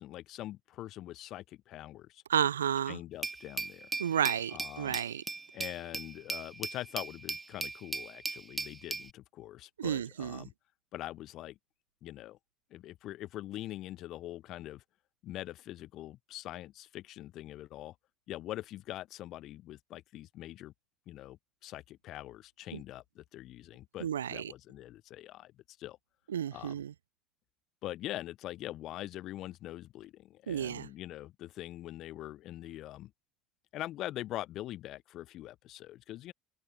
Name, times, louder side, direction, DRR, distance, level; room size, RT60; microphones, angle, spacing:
voice 1, 0.0-2.2 2.9-3.9 4.5-5.0 5.5-10.5 10.9-11.6 12.0-12.4 12.7-14.8 15.2-18.0 18.3-20.7 21.1-25.5 25.8-26.0 26.5-26.8 27.8-33.1 33.7-36.3, left 14 dB, 55° left, 0.5 m, -43 dB
voice 2, 2.3-3.0 4.0-5.2 9.8-10.5 22.7-22.8 24.0-24.5 26.3-26.9 30.5-30.9, right 9 dB, 80° right, 0.4 m, -32 dB
Glass, 3.2-9.1, right 3 dB, 20° right, 0.6 m, -38 dB
open air
figure-of-eight pair, 60°, 0 cm